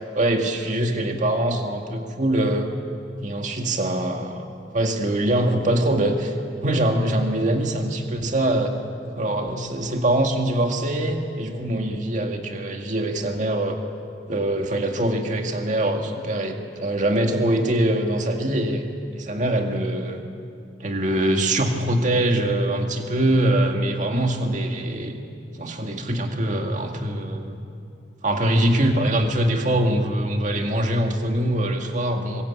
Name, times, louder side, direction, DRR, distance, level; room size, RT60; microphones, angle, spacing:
voice 1, 0.2-2.7 3.2-4.5 4.7-6.3 6.6-8.7 9.2-13.8 14.3-18.8 19.2-20.2 20.8-25.2 25.6-27.6 28.2-32.4, right 1 dB, 45° right, 3 dB, 2.0 m, -23 dB
25.0 x 22.0 x 8.5 m, 2.4 s
head